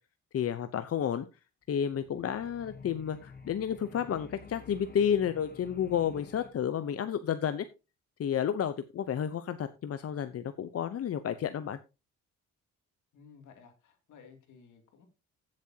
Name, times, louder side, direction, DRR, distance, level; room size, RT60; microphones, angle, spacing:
voice 1, 0.3-1.2 1.7-7.7 8.2-11.8, left 8 dB, 50° left, 11 dB, 0.8 m, -31 dB
sound 1, 1.7-6.5, left 4 dB, 30° left, 1.8 m, -51 dB
voice 2, 13.1-15.1, left 6 dB, 75° left, 5 dB, 2.8 m, -56 dB
15.0 x 7.6 x 2.8 m, 0.28 s
cardioid pair, 90°, 30 cm